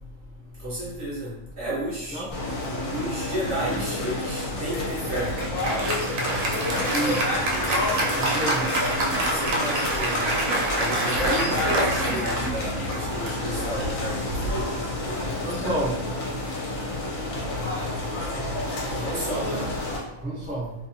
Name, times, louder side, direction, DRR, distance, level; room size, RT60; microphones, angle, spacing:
voice 1, 0.6-2.2 2.9-5.3 9.3-10.3 10.8-14.7 18.9-19.7, right 1 dB, 55° right, -7 dB, 0.9 m, -32 dB
sound 1, 2.3-20.0, left 2 dB, 65° left, 1.1 m, -29 dB
Applause, 5.1-14.9, right 2 dB, 75° right, 1.1 m, -27 dB
voice 2, 6.9-7.2 8.1-8.8 15.4-16.0 19.5-19.7 20.2-20.7, right 2 dB, 10° right, -8 dB, 0.6 m, -29 dB
2.7 x 2.4 x 2.6 m, 0.92 s
omnidirectional pair, 1.6 m